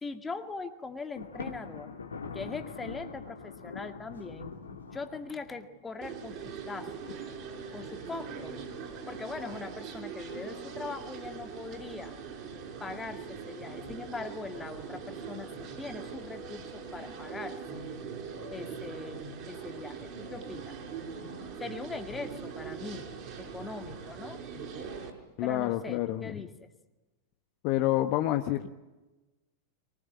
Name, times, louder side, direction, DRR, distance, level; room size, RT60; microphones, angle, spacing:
voice 1, 0.0-2.0 2.3-4.5 4.9-7.1 7.7-8.6 9.1-12.2 12.8-17.8 18.5-20.8 21.6-23.1 23.4-24.4 25.4-26.7, left 4 dB, 15° left, 6 dB, 2.0 m, -41 dB
Thunder, 1.2-5.7, left 5 dB, 75° left, 2.3 m, -43 dB
sound 1, 6.0-25.1, right 6 dB, 40° right, 5.3 m, -41 dB
voice 2, 25.4-26.3 27.6-28.7, left 14 dB, 45° left, 7 dB, 1.1 m, -28 dB
23.0 x 20.0 x 9.7 m, 1.1 s
figure-of-eight pair, 90°, 0 cm